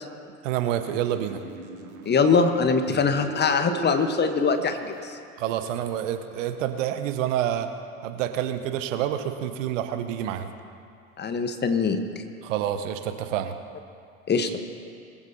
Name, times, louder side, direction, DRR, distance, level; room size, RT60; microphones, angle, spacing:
voice 1, 0.4-1.4 2.9-3.0 5.4-7.7 8.0-10.5 12.4-13.5, right 11 dB, 60° right, 9 dB, 1.1 m, -28 dB
sound 1, 1.1-5.1, right 7 dB, 80° right, 1.6 m, -39 dB
voice 2, 2.0-5.2 11.2-12.0 14.3-14.6, left 5 dB, 25° left, 8 dB, 1.1 m, -22 dB
22.5 x 14.0 x 2.8 m, 2.4 s
figure-of-eight pair, 80°, 42 cm